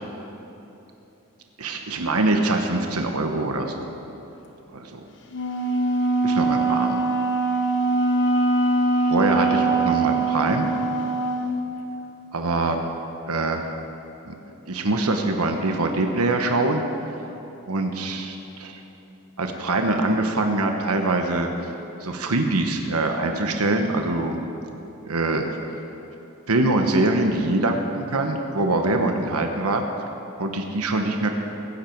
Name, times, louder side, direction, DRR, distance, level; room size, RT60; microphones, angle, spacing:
voice 1, 1.6-3.9 4.7-4.9 6.2-7.0 9.1-10.7 12.3-12.8 13.3-13.7 14.3-14.4 14.7-16.8 17.7-18.7 19.4-21.7 22.0-24.4 25.1-25.6 26.5-29.8 30.4-31.3, right 2 dB, 90° right, 4 dB, 1.1 m, -23 dB
Wind instrument woodwind instrument, 5.3-11.6, right 2 dB, 55° left, 1.2 m, -22 dB
23.0 x 10.5 x 4.6 m, 3.0 s
head